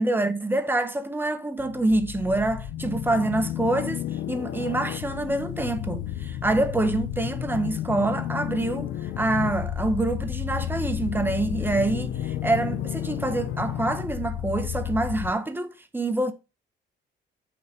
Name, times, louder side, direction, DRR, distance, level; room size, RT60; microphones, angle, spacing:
voice 1, 0.0-16.3, right 2 dB, 10° right, 1.4 m, -26 dB
sound 1, 1.6-15.3, left 11 dB, 80° left, 1.0 m, -32 dB
7.9 x 6.3 x 4.6 m
cardioid pair, 90°, 20 cm